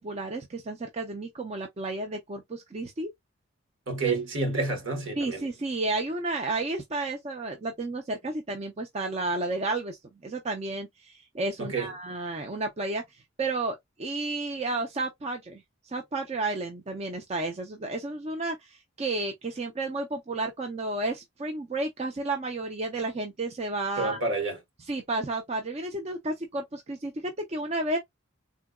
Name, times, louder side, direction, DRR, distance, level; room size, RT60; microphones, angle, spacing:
voice 1, 0.0-3.1 4.0-4.2 5.2-10.0 10.2-24.2 24.9-28.0, right 2 dB, 30° right, 0.4 m, -32 dB
voice 2, 3.9-5.4 11.6-11.9 24.0-24.6, right 3 dB, 65° right, 1.1 m, -29 dB
3.7 x 2.2 x 2.2 m
head